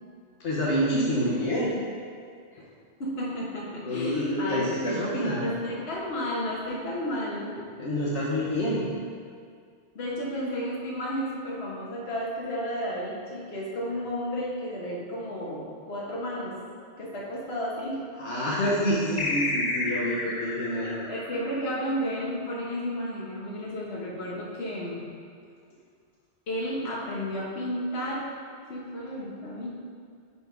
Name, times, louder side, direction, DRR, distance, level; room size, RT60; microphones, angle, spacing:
voice 1, 0.4-1.7 2.6-2.7 3.8-5.5 7.8-8.8 18.2-21.0, equal, 80° left, -6 dB, 1.2 m, -27 dB
voice 2, 3.0-5.0 5.4-7.6 9.9-16.6 17.0-18.0 20.8-25.0 26.5-28.3 28.7-29.7, equal, 60° left, -5 dB, 1.4 m, -32 dB
sound 1, 19.2-22.2, left 2 dB, 45° left, 0.4 m, -31 dB
6.8 x 3.5 x 5.0 m, 2.1 s
omnidirectional pair, 1.2 m